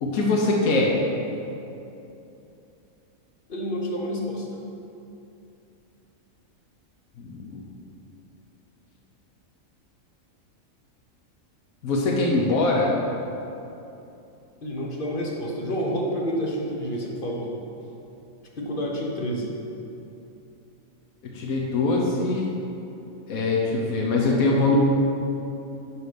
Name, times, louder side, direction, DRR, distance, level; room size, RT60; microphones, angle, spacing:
voice 1, 0.0-0.9 7.2-7.6 11.8-12.9 21.3-22.5 23.3-24.8, left 3 dB, 85° left, -2 dB, 1.4 m, -22 dB
voice 2, 3.5-4.5 14.6-17.5 18.6-19.5, equal, 40° left, -2 dB, 1.2 m, -29 dB
9.4 x 4.9 x 5.2 m, 2.8 s
omnidirectional pair, 1.4 m